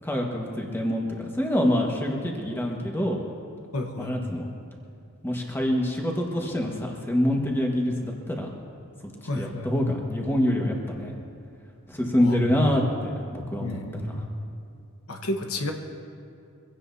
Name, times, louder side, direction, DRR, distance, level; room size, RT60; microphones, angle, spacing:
voice 1, 0.0-3.2 4.0-4.5 5.2-8.5 9.3-11.1 11.9-14.2, left 1 dB, 10° left, 0 dB, 1.5 m, -26 dB
voice 2, 3.7-4.1 9.2-9.7 12.2-12.6 13.6-14.2 15.1-15.7, left 1 dB, 90° left, 4 dB, 1.3 m, -31 dB
24.5 x 16.5 x 2.8 m, 2.4 s
head